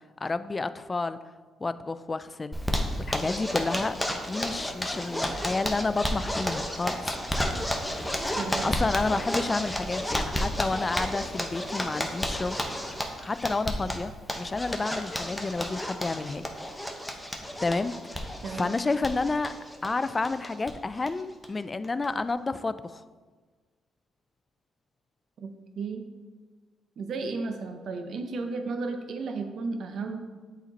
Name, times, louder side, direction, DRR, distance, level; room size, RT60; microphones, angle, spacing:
voice 1, 0.2-1.2 1.6-2.6 3.0-3.9 4.2-7.2 8.6-12.6 13.2-16.4 17.6-18.3 18.5-19.5 19.8-23.0, left 3 dB, 25° left, 13 dB, 0.3 m, -30 dB
Zipper (clothing), 2.5-20.7 21.0-21.1 21.4-21.5 21.8-22.3, equal, 5° left, 0.9 m, -32 dB
voice 2, 8.4-8.8 18.4-18.8 25.4-26.0 27.0-30.3, right 4 dB, 65° right, 6 dB, 0.8 m, -34 dB
8.2 x 4.4 x 4.0 m, 1.4 s
cardioid pair, 90°, 0 cm